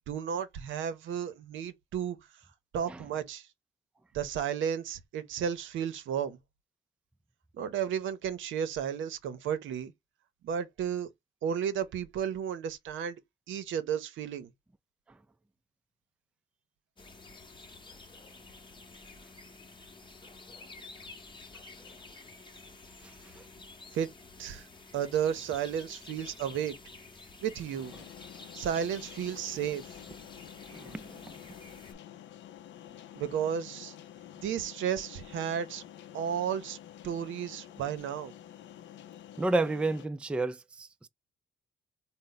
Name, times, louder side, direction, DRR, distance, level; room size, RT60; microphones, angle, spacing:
voice 1, 0.1-2.2 2.7-3.5 4.1-6.4 7.5-9.9 10.4-11.1 11.4-13.2 13.5-14.5 23.9-24.1 24.4-24.7 24.9-26.8 27.4-27.9 28.5-30.0 33.2-33.9 34.4-35.8 36.1-36.8 37.0-38.3, right 8 dB, 75° right, 0.7 m, -33 dB
sound 1, 17.0-31.9, left 3 dB, 25° left, 0.8 m, -50 dB
sound 2, 27.8-40.1, left 11 dB, 70° left, 0.5 m, -49 dB
voice 2, 30.7-31.3 39.4-41.1, right 2 dB, 5° right, 0.3 m, -31 dB
4.0 x 2.0 x 3.8 m
cardioid pair, 90°, 20 cm